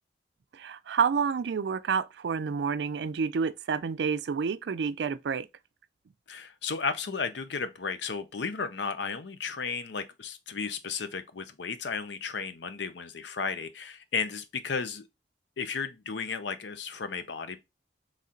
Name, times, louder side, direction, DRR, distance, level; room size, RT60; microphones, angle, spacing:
voice 1, 0.5-5.5, right 6 dB, 75° right, 0.4 m, -29 dB
voice 2, 6.3-15.1 15.6-17.6, left 5 dB, 85° left, 0.6 m, -34 dB
4.2 x 3.2 x 3.7 m
head